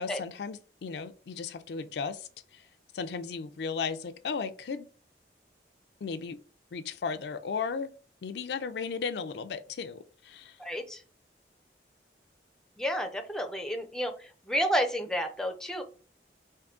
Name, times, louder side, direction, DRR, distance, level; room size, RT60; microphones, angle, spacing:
voice 1, 0.0-2.3 2.9-4.9 6.0-6.4 6.7-7.9 8.2-10.0 10.2-10.5, left 5 dB, 70° left, 0.4 m, -35 dB
voice 2, 10.6-11.0 12.8-14.1 14.5-15.8, equal, 5° left, 0.5 m, -30 dB
3.6 x 2.6 x 3.6 m
head